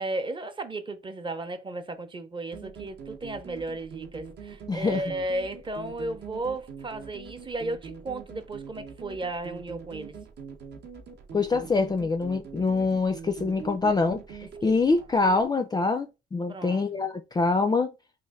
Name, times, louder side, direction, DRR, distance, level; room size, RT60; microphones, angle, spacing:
voice 1, 0.0-10.2 14.6-14.7 16.5-16.8, right 2 dB, 25° right, 0.6 m, -34 dB
sound 1, 2.5-15.4, right 6 dB, 60° right, 0.7 m, -43 dB
voice 2, 4.7-5.0 11.3-17.9, left 3 dB, 20° left, 0.3 m, -25 dB
3.1 x 2.5 x 3.5 m
cardioid pair, 90°, 20 cm